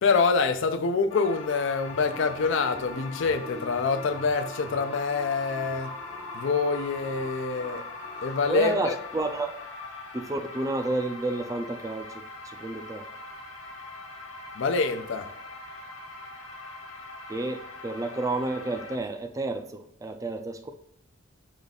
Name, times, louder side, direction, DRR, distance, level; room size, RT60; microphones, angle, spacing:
voice 1, 0.0-5.9 6.3-7.8 8.2-8.9 14.6-15.3, left 4 dB, 65° left, 0.5 m, -26 dB
sound 1, 1.1-19.0, left 4 dB, 85° left, 0.9 m, -42 dB
sound 2, 1.9-8.7, left 1 dB, 45° left, 1.5 m, -43 dB
voice 2, 8.5-9.5 10.1-13.1 17.3-20.7, right 2 dB, 15° right, 0.4 m, -30 dB
5.0 x 2.4 x 4.0 m
head